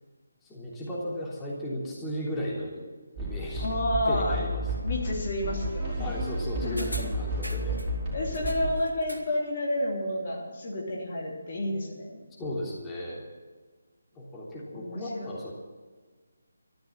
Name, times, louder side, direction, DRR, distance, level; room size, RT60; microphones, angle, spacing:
voice 1, 0.4-2.8 3.2-4.6 6.0-7.8 12.4-13.2 14.1-15.5, left 1 dB, 10° left, -5 dB, 3.3 m, -35 dB
sound 1, 3.2-8.7, equal, 25° right, 4.9 m, -32 dB
voice 2, 3.6-4.4 4.8-6.1 6.6-7.1 8.1-12.2 14.7-15.3, left 1 dB, 40° left, -2 dB, 3.2 m, -30 dB
sound 2, 6.8-7.9 8.3-9.4 9.7-9.8, equal, 85° left, 2.7 m, -41 dB
14.0 x 12.0 x 7.5 m, 1.4 s
figure-of-eight pair, 150°, 0 cm